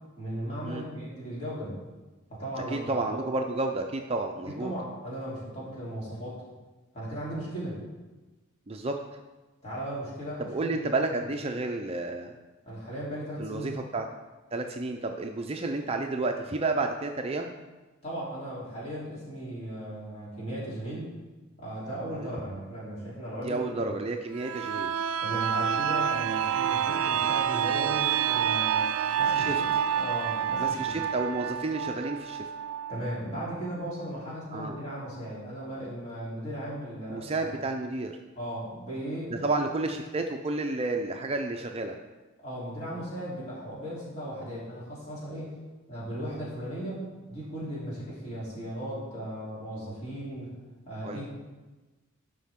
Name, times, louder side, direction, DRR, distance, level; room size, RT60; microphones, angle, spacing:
voice 1, 0.2-1.8 2.3-3.2 4.5-6.4 6.9-7.8 9.6-11.1 12.6-13.7 18.0-21.1 21.6-23.8 25.2-28.9 29.2-29.7 29.9-30.8 32.9-37.5 38.4-39.5 42.4-45.5 45.9-50.5 50.8-51.3, equal, 30° left, -8 dB, 3.2 m, -37 dB
voice 2, 2.7-4.7 8.7-9.0 10.4-12.3 13.4-14.1 14.5-17.5 22.1-22.3 23.4-24.9 29.4-29.6 30.6-32.5 34.5-34.8 37.1-38.2 39.3-41.9 51.0-51.2, right 2 dB, 30° right, 4 dB, 0.4 m, -31 dB
sound 1, 24.3-33.9 34.3-34.4, right 8 dB, 90° right, 0.4 m, -28 dB
11.5 x 5.7 x 3.6 m, 1.2 s
head